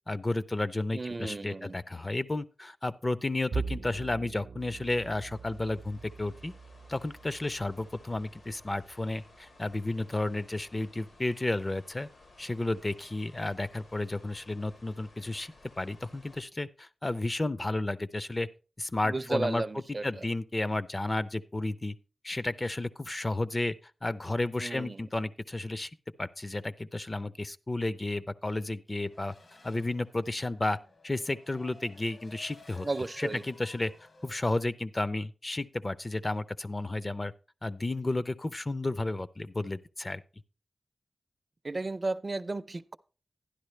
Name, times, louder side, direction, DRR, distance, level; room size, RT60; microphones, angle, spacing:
voice 1, 0.1-6.5 6.9-12.1 12.4-18.5 18.8-19.6 20.0-21.9 22.2-23.8 24.0-25.9 26.2-29.3 29.6-30.8 31.0-32.9 33.2-33.9 34.2-37.3 37.6-40.2, left 2 dB, 30° left, 0.4 m, -32 dB
voice 2, 0.9-1.7 19.0-20.2 24.6-25.0 32.8-33.4 41.6-43.0, right 2 dB, 40° right, 0.4 m, -34 dB
Bowed string instrument, 3.5-9.9, right 5 dB, 90° right, 0.6 m, -42 dB
sound 1, 4.6-16.4, left 2 dB, 80° left, 1.6 m, -58 dB
Race car auto racing / Accelerating revving vroom, 28.9-34.6, left 2 dB, 55° left, 1.1 m, -55 dB
11.5 x 10.5 x 3.2 m
wide cardioid pair, 90°, 0 cm